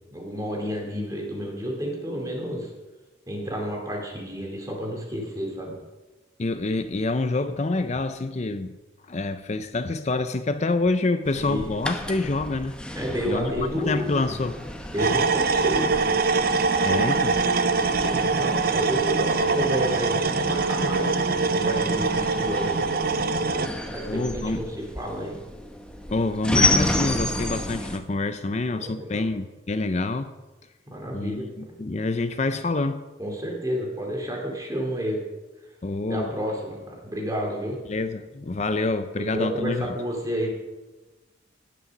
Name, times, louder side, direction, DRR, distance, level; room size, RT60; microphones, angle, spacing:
voice 1, 0.1-2.7 3.3-5.7 11.3-11.9 12.9-14.2 14.9-16.0 18.0-21.2 21.5-22.7 23.5-25.4 28.7-29.3 30.9-31.5 33.2-35.2 36.1-37.8 39.2-40.5, equal, 20° right, 0 dB, 2.7 m, -30 dB
voice 2, 6.4-8.8 9.1-12.8 13.3-14.6 15.0-15.1 16.8-17.4 24.1-24.7 26.1-30.3 31.1-33.0 35.8-36.3 37.9-39.9, left 2 dB, 35° left, 10 dB, 0.5 m, -27 dB
sound 1, 11.3-28.0, left 2 dB, 5° left, 0.9 m, -31 dB
sound 2, 15.0-23.7, right 4 dB, 50° right, 0.6 m, -23 dB
18.5 x 6.6 x 6.0 m, 1.1 s
head